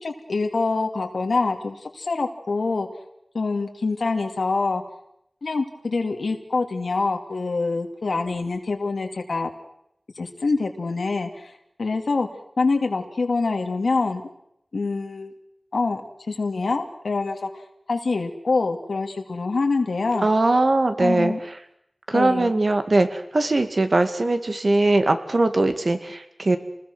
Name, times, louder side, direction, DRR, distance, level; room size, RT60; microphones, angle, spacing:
voice 1, 0.0-2.9 3.3-4.8 5.4-9.5 10.2-11.5 11.8-12.3 12.6-14.2 14.7-15.3 15.7-16.0 16.3-17.6 17.9-20.3 21.0-21.4 22.1-22.6, left 3 dB, 90° left, 4 dB, 2.4 m, -25 dB
voice 2, 20.2-21.3 22.1-26.6, right 2 dB, 55° right, 8 dB, 2.3 m, -20 dB
28.0 x 20.5 x 6.3 m, 0.76 s
wide cardioid pair, 80°, 0 cm